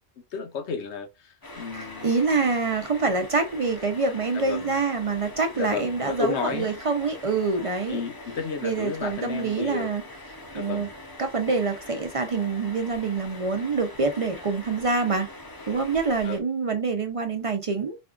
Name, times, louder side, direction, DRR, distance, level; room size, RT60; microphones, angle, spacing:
voice 1, 0.3-2.1 4.3-4.7 5.5-6.7 7.9-9.9 10.5-10.9 16.2-16.4, left 5 dB, 80° left, 1.1 m, -32 dB
sound 1, 1.4-16.4, left 2 dB, 30° left, 0.5 m, -43 dB
voice 2, 1.7-8.0 8.6-10.0 10.5-10.9 11.2-15.3 15.7-18.0, right 4 dB, 45° right, 0.4 m, -26 dB
4.3 x 2.3 x 2.3 m
omnidirectional pair, 1.1 m